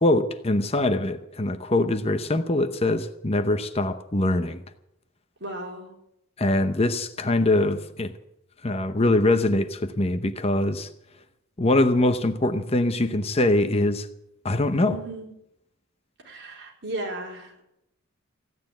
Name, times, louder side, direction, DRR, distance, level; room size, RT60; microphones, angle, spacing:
voice 1, 0.0-4.6 6.4-8.1 8.6-10.9 11.6-14.1 14.4-15.0, left 2 dB, 30° left, 0.7 m, -23 dB
voice 2, 5.4-5.9 14.9-15.3 16.2-17.6, right 1 dB, 55° right, 4.0 m, -35 dB
15.5 x 9.4 x 9.1 m
head